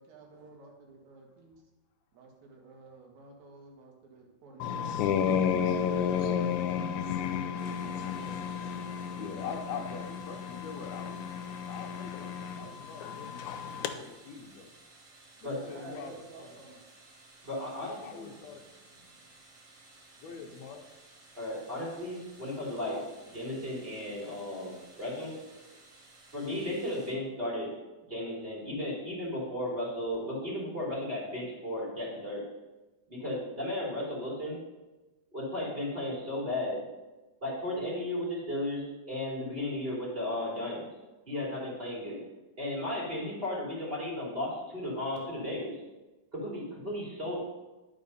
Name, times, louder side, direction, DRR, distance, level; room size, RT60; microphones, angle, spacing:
voice 1, 0.0-1.5 2.1-5.5 5.9-6.7 7.8-8.5 15.7-16.9, right 3 dB, 70° right, 0 dB, 2.9 m, -51 dB
sound 1, 4.6-13.9, left 8 dB, 90° left, 2.0 m, -32 dB
sound 2, 7.6-27.1, right 2 dB, 55° right, 2.3 m, -57 dB
voice 2, 9.1-11.2 11.7-14.7 15.4-16.1 17.8-19.1 20.2-20.9, left 5 dB, 70° left, 4 dB, 2.1 m, -43 dB
voice 3, 17.4-18.3 21.4-25.3 26.3-27.7 28.0-32.5 33.1-34.6 35.3-36.8 37.4-40.8 41.3-42.2 42.6-45.8 46.3-47.4, left 1 dB, 20° right, -6 dB, 3.1 m, -35 dB
11.0 x 5.1 x 5.3 m, 1.1 s
omnidirectional pair, 3.4 m